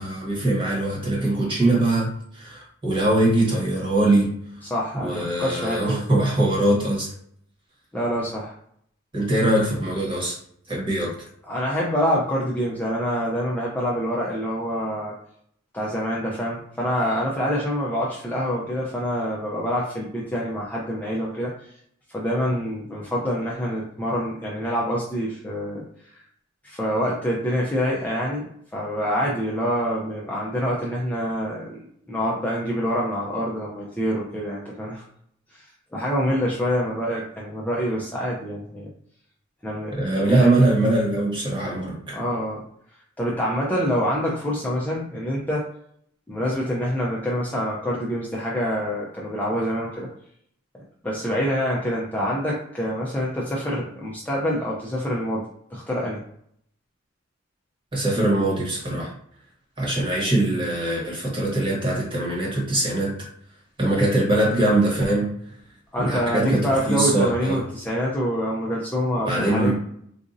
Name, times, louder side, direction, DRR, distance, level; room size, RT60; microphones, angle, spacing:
voice 1, 0.0-4.4 4.9-7.1 9.1-10.4 10.7-11.1 39.9-42.2 57.9-59.1 59.8-63.1 63.8-65.3 66.0-67.6 69.2-69.7, right 1 dB, 25° right, -4 dB, 1.3 m, -22 dB
voice 2, 4.6-6.1 7.9-8.5 11.5-15.1 15.7-21.7 22.1-25.8 26.6-35.0 35.5-38.9 39.6-40.5 42.1-42.6 43.2-45.6 46.3-50.1 51.0-55.4 55.7-56.2 65.9-69.7, equal, 10° left, -5 dB, 0.5 m, -26 dB
4.0 x 2.5 x 2.5 m, 0.67 s
head